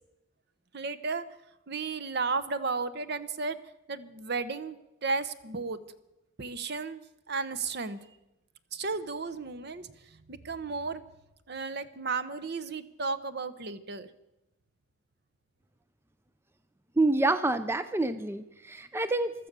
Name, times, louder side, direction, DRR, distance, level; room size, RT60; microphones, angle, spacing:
voice 1, 0.7-1.2 1.7-3.6 3.9-4.8 5.0-5.8 6.4-7.0 7.3-8.0 8.7-11.0 11.5-14.1, right 4 dB, 55° right, 14 dB, 0.9 m, -33 dB
voice 2, 17.0-19.5, right 2 dB, 10° right, 11 dB, 0.5 m, -27 dB
15.5 x 12.5 x 6.8 m, 0.93 s
head